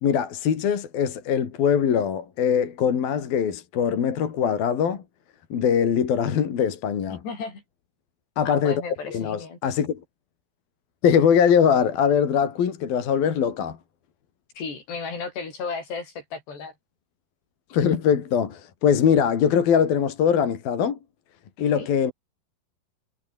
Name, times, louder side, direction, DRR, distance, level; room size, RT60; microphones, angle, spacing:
voice 1, 0.0-5.0 5.5-7.2 8.4-8.8 9.1-10.0 11.0-13.8 17.7-21.0 21.6-22.1, left 7 dB, 65° left, 4.6 m, -22 dB
voice 2, 7.1-7.6 8.5-9.6 14.6-16.7 21.6-21.9, left 4 dB, 85° left, 9.3 m, -34 dB
omnidirectional pair, 4.7 m